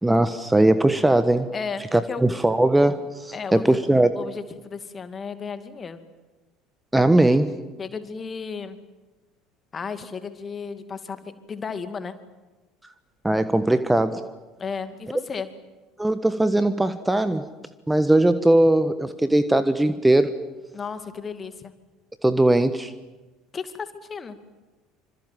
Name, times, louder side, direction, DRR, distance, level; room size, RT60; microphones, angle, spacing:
voice 1, 0.0-1.5 1.9-4.1 6.9-7.5 13.2-14.2 16.0-17.4 17.9-20.3 22.2-22.9, right 1 dB, 10° right, 12 dB, 1.3 m, -19 dB
voice 2, 1.5-2.2 3.3-3.8 4.1-6.0 7.8-8.8 9.7-12.2 14.6-15.5 20.7-21.7 23.5-24.4, left 5 dB, 30° left, 10 dB, 2.4 m, -34 dB
27.0 x 26.0 x 7.7 m, 1.2 s
figure-of-eight pair, 65°, 0 cm